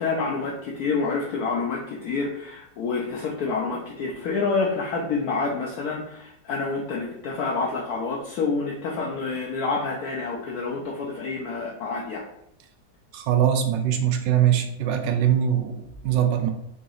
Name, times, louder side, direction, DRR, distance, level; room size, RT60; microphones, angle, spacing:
voice 1, 0.0-12.2, left 4 dB, 70° left, -2 dB, 1.0 m, -28 dB
voice 2, 13.1-16.5, right 10 dB, 80° right, 6 dB, 1.3 m, -22 dB
4.0 x 2.8 x 3.8 m, 0.76 s
omnidirectional pair, 1.9 m